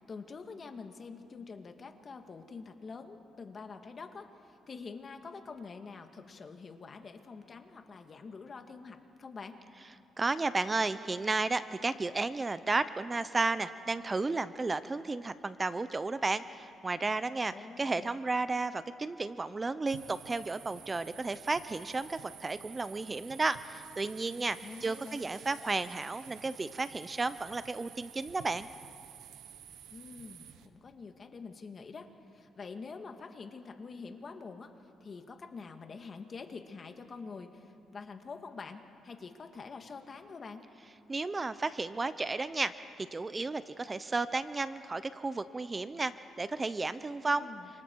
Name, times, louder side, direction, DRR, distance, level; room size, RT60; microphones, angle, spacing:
voice 1, 0.1-9.6 17.5-18.2 24.6-25.2 29.9-34.7 35.0-40.6 47.2-47.7, left 4 dB, 40° left, 6 dB, 2.0 m, -46 dB
voice 2, 10.2-28.7 41.1-46.1 46.4-47.5, right 3 dB, 25° right, 13 dB, 0.7 m, -33 dB
sound 1, 19.9-30.7, right 9 dB, 85° right, 1.3 m, -51 dB
28.5 x 27.0 x 4.7 m, 2.6 s
cardioid pair, 90°, 0 cm